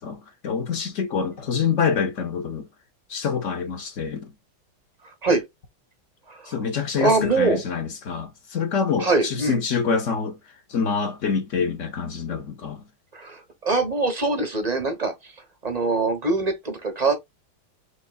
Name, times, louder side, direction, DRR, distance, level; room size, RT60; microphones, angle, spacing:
voice 1, 0.0-2.7 3.1-4.3 6.4-10.4 10.7-12.8, left 6 dB, 50° left, 1.0 m, -26 dB
voice 2, 5.0-5.4 6.3-6.5 7.0-7.6 9.0-9.6 13.1-15.3 15.6-17.1, right 3 dB, 35° right, 0.6 m, -23 dB
5.3 x 3.4 x 2.3 m
omnidirectional pair, 2.3 m